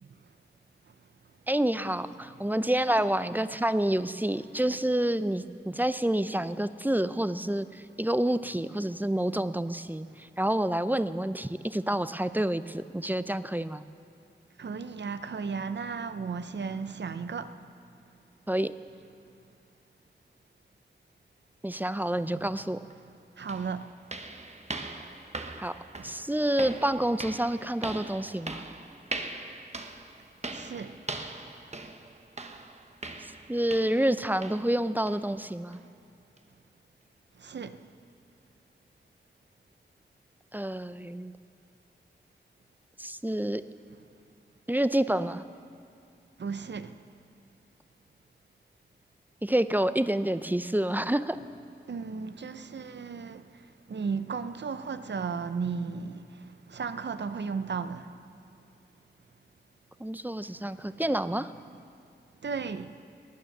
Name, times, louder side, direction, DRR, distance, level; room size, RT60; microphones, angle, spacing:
voice 1, 1.5-13.8 18.5-18.7 21.6-22.8 25.6-25.7 26.0-28.6 33.5-35.8 40.5-41.3 43.0-43.6 44.7-45.4 49.4-51.4 60.0-61.5, right 1 dB, 10° right, 0.5 m, -28 dB
voice 2, 14.6-17.5 22.2-22.6 23.4-23.9 26.0-26.1 30.5-31.0 37.4-37.8 46.4-47.0 51.9-53.4 53.9-58.1 61.0-61.1 62.4-62.9, right 5 dB, 70° right, 0.6 m, -35 dB
sound 1, 22.9-23.0 23.5-34.1 34.4-34.7 35.1-35.2 35.7-35.8 36.4-36.5, right 2 dB, 35° right, 0.9 m, -41 dB
18.5 x 9.3 x 6.6 m
cardioid pair, 50°, 19 cm